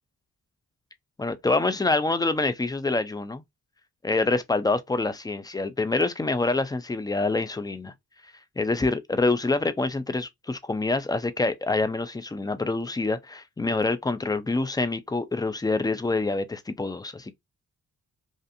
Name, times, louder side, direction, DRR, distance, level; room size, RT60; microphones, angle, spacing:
voice 1, 1.2-3.4 4.0-7.9 8.6-17.3, left 3 dB, 10° left, 0.3 m, -26 dB
2.5 x 2.5 x 2.4 m
cardioid pair, 75°, 39 cm